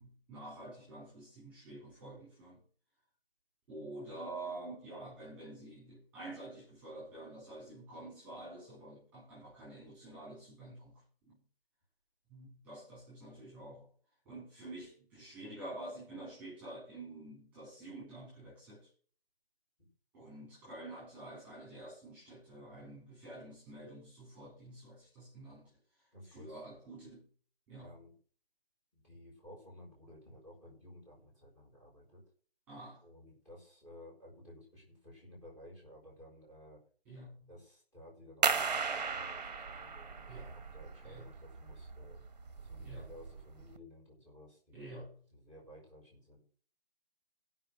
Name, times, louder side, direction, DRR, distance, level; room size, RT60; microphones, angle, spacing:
voice 1, 0.0-2.6 3.7-11.4 12.3-13.9 14.3-18.9 20.1-25.7 26.3-27.3 27.7-27.9 32.7-33.0 37.1-37.5 40.3-40.5 41.0-41.3 42.8-43.1 44.7-45.1, right 2 dB, 5° right, 4.2 m, -48 dB
voice 2, 26.1-26.6 27.8-28.1 28.9-32.2 33.0-36.8 37.5-42.2 42.6-46.4, left 1 dB, 10° left, 4.8 m, -55 dB
sound 1, 38.4-43.8, right 5 dB, 45° right, 1.3 m, -36 dB
17.0 x 5.9 x 6.3 m
hypercardioid pair, 170°, 30 cm